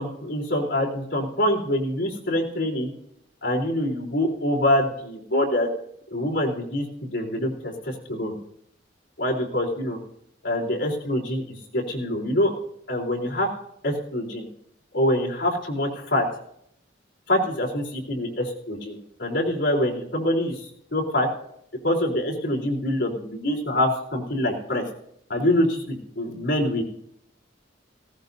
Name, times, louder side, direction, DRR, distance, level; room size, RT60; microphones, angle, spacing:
voice 1, 0.0-2.9 3.4-5.7 6.1-8.4 9.2-10.0 10.4-12.5 12.9-13.5 13.8-14.5 14.9-16.3 17.3-21.3 21.8-24.8 25.3-26.8, left 1 dB, 70° left, -2 dB, 3.8 m, -25 dB
19.0 x 17.0 x 2.7 m, 0.71 s
head